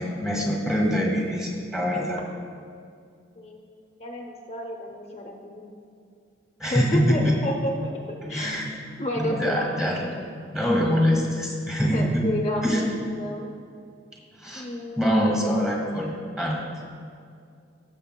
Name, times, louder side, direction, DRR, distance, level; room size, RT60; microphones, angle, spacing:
voice 1, 0.0-2.2 6.6-7.5 8.2-8.7 9.1-10.0 10.5-12.3 12.6-12.8 14.4-14.7 15.0-16.6, equal, 5° right, -2 dB, 1.7 m, -24 dB
voice 2, 4.0-5.7 6.7-7.9 8.3-8.6 9.0-9.7 10.0-10.2 11.8-13.5 14.5-15.4, left 1 dB, 35° left, 0 dB, 0.7 m, -31 dB
17.0 x 6.9 x 2.2 m, 2.3 s
head